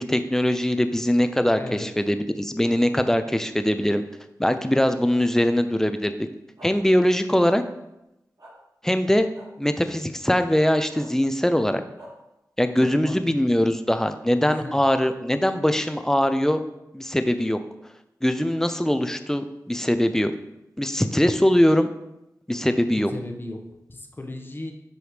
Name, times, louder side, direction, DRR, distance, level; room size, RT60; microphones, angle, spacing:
voice 1, 0.0-4.0 4.4-6.1 6.6-7.6 8.8-9.3 9.6-11.8 12.6-16.6 16.9-17.6 18.2-20.3 20.8-21.9 22.5-23.1, equal, 5° left, 9 dB, 0.5 m, -22 dB
voice 2, 1.6-1.9 12.8-13.2 13.5-13.6 14.5-14.8 23.0-23.6 23.9-24.7, left 2 dB, 30° left, 4 dB, 1.0 m, -36 dB
sound 1, 6.6-6.7 7.4-7.6 8.4-8.5 9.3-9.5 10.9-11.0 12.0-12.1, equal, 70° right, 2.0 m, -44 dB
8.0 x 3.1 x 5.0 m, 0.90 s
cardioid pair, 55°, 7 cm